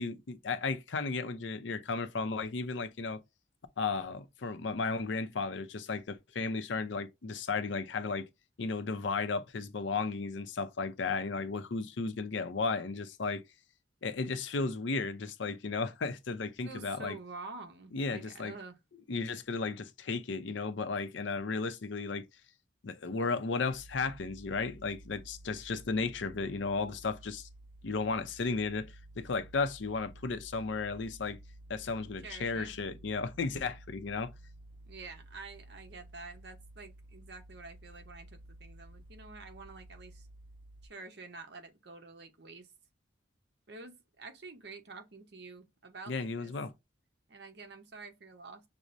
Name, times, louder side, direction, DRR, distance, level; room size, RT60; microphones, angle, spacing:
voice 1, 0.0-3.2 3.8-8.3 8.6-13.4 14.0-17.2 17.9-18.5 19.1-22.3 22.8-27.5 27.8-31.4 31.7-34.3 46.1-46.7, left 4 dB, 75° left, 0.5 m, -34 dB
voice 2, 16.6-18.8 32.2-32.7 34.8-40.3 40.8-42.7 43.7-46.5 47.3-48.6, right 3 dB, 60° right, 0.9 m, -48 dB
sound 1, 23.7-40.9, right 1 dB, 25° right, 1.2 m, -53 dB
6.0 x 2.1 x 2.6 m
head